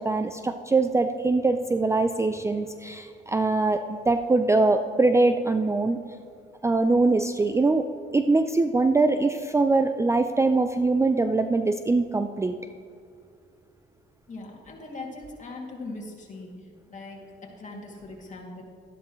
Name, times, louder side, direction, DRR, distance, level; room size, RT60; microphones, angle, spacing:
voice 1, 0.0-6.0 6.6-7.9 8.1-12.6, right 3 dB, 15° right, 8 dB, 0.4 m, -23 dB
voice 2, 14.3-17.2 17.6-18.6, left 2 dB, 40° left, -1 dB, 2.5 m, -40 dB
13.0 x 11.0 x 3.1 m, 2.3 s
cardioid pair, 90°, 20 cm